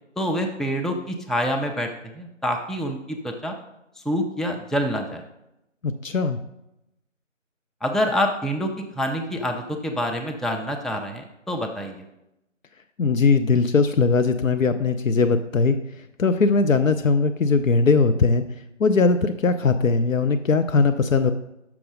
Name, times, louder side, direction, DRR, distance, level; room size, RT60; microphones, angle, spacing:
voice 1, 0.2-3.5 4.0-5.2 7.8-12.0, equal, ahead, 2 dB, 0.4 m, -26 dB
voice 2, 5.8-6.4 13.0-15.8 16.2-18.4 18.8-21.3, left 4 dB, 85° left, 10 dB, 0.6 m, -20 dB
6.0 x 6.0 x 5.1 m, 0.88 s
figure-of-eight pair, 170°, 38 cm